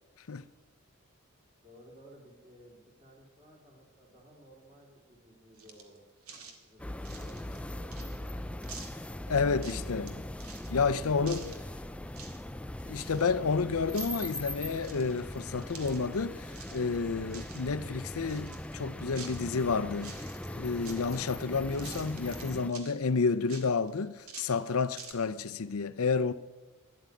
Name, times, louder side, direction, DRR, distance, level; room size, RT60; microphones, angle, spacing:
voice 1, 1.6-8.8, equal, 30° right, 3.9 m, -56 dB
sound 1, 5.6-6.0 6.2-6.6 7.0-8.3 8.6-9.1 9.5-10.1 10.4-10.7 11.3-11.8 12.1-12.4 12.7-13.6 13.9-14.3 14.8-16.2 16.5-16.8 17.1-17.7 18.3-19.6 19.9-20.5 20.8-21.4 21.7-23.0 23.5-25.1, right 5 dB, 70° right, 2.0 m, -48 dB
sound 2, 6.8-22.7, left 1 dB, 5° left, 0.4 m, -40 dB
voice 2, 9.3-10.1 10.7-11.6 12.8-20.3 20.5-26.3, left 4 dB, 70° left, 0.6 m, -30 dB
13.0 x 11.0 x 8.5 m
head